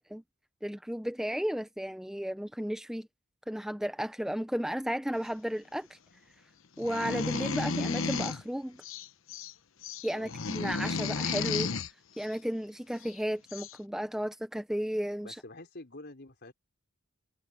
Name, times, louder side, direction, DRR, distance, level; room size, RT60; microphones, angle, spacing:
voice 1, 0.6-3.1 3.5-6.0 6.8-8.8 10.0-11.7 12.2-15.4, equal, ahead, 0.7 m, -33 dB
sound 1, 6.8-8.4 8.8-9.5 9.8-11.9 13.1-13.2 13.5-13.8, left 4 dB, 70° left, 1.0 m, -33 dB
voice 2, 15.2-16.5, left 2 dB, 55° left, 4.7 m, -47 dB
head